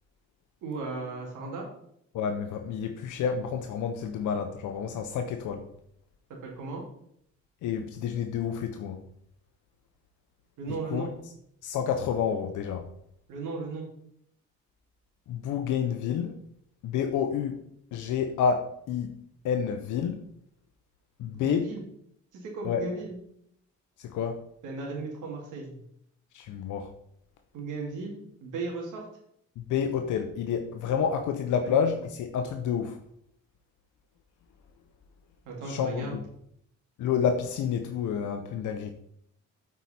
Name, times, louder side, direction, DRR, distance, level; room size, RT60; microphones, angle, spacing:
voice 1, 0.6-1.7 6.3-6.8 10.6-11.1 13.3-13.8 21.3-21.8 22.3-23.2 24.6-25.8 27.5-29.0 31.6-31.7 35.4-36.2, right 3 dB, 85° right, 0 dB, 2.4 m, -36 dB
voice 2, 2.1-5.6 7.6-9.0 10.9-11.1 11.6-12.9 15.3-16.4 16.8-17.6 17.9-19.1 19.4-20.2 21.2-21.7 22.6-22.8 24.0-24.4 26.3-26.9 29.6-33.0 35.6-36.2 37.0-38.9, left 7 dB, 80° left, 6 dB, 0.7 m, -29 dB
8.1 x 4.8 x 4.2 m, 0.71 s
cardioid pair, 90°, 30 cm